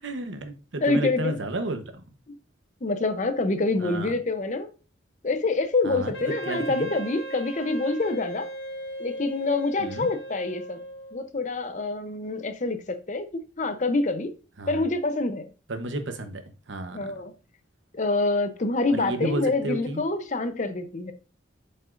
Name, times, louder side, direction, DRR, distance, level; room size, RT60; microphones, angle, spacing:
voice 1, 0.0-2.0 3.8-4.1 5.8-6.1 6.5-6.9 9.8-10.1 14.6-14.8 15.7-16.4 16.7-17.1 18.9-20.0, right 2 dB, 85° right, 1.0 m, -32 dB
voice 2, 0.8-1.4 2.3-2.4 2.8-4.7 5.2-8.5 9.0-10.8 11.1-14.3 14.7-15.5 16.9-17.3 17.9-21.1, left 3 dB, 40° left, 0.7 m, -26 dB
Wind instrument woodwind instrument, 6.1-11.2, right 1 dB, 65° left, 1.2 m, -37 dB
7.6 x 5.4 x 2.5 m
head